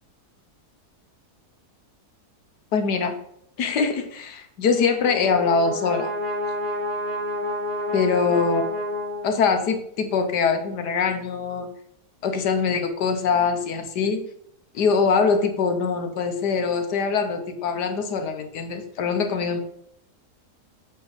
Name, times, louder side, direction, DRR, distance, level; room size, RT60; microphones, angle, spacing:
voice 1, 2.7-3.2 3.6-6.1 7.9-8.6 9.2-11.7 12.2-14.2 14.7-19.6, left 5 dB, 80° left, 6 dB, 1.6 m, -23 dB
Brass instrument, 4.6-9.7, left 1 dB, 30° right, 4.1 m, -29 dB
8.0 x 7.0 x 4.1 m, 0.74 s
omnidirectional pair, 1.7 m